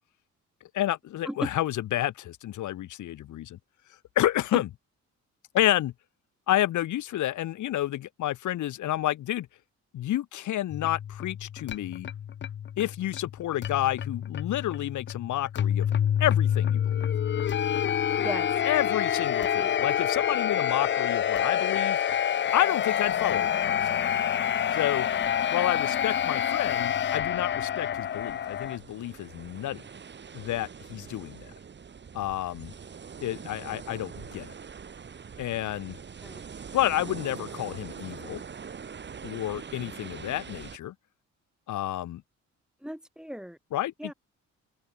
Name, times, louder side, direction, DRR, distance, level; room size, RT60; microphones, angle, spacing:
voice 1, 0.7-3.6 4.2-4.7 5.5-5.9 6.5-9.5 9.9-12.1 12.8-15.9 16.2-17.0 18.6-22.0 22.5-23.8 24.7-25.1 25.5-29.8 30.3-31.5 32.1-32.7 33.2-34.5 35.4-36.0 36.7-38.4 39.2-40.9 41.7-42.2 43.7-44.1, left 13 dB, 75° left, 2.2 m, -29 dB
sound 1, 10.7-28.8, left 9 dB, 40° left, 0.5 m, -27 dB
voice 2, 19.4-19.9 36.2-36.4 42.8-43.6 44.0-44.1, equal, ahead, 2.4 m, -36 dB
sound 2, 25.5-40.8, right 6 dB, 35° right, 1.9 m, -44 dB
open air
cardioid pair, 90°, 30 cm